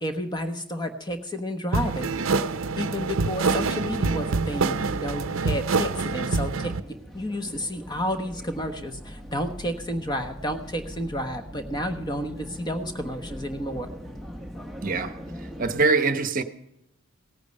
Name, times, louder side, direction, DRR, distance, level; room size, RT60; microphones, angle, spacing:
voice 1, 0.0-2.1 2.8-13.9, equal, 20° left, 1.1 m, -31 dB
sound 1, 1.7-6.8, right 4 dB, 70° right, 0.6 m, -26 dB
sound 2, 5.4-15.9, equal, ahead, 0.9 m, -41 dB
voice 2, 14.8-16.4, right 3 dB, 40° right, 0.9 m, -24 dB
17.5 x 9.0 x 5.3 m
head